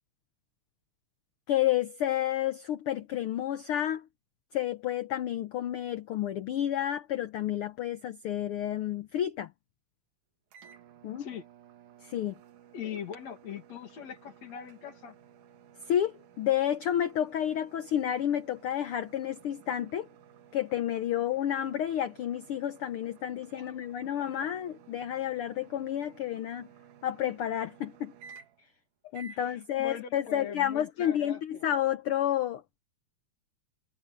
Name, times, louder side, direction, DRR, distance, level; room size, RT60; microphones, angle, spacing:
voice 1, 1.5-4.0 4.5-9.5 11.0-11.3 12.0-12.3 15.9-20.1 20.5-26.7 27.0-28.1 29.1-32.8, left 11 dB, 80° left, 1.2 m, -30 dB
sound 1, 10.5-28.7 29.1-29.5, right 7 dB, 80° right, 3.0 m, -55 dB
voice 2, 12.7-15.2 23.5-23.8 29.0-31.6, left 8 dB, 60° left, 3.2 m, -42 dB
omnidirectional pair, 3.5 m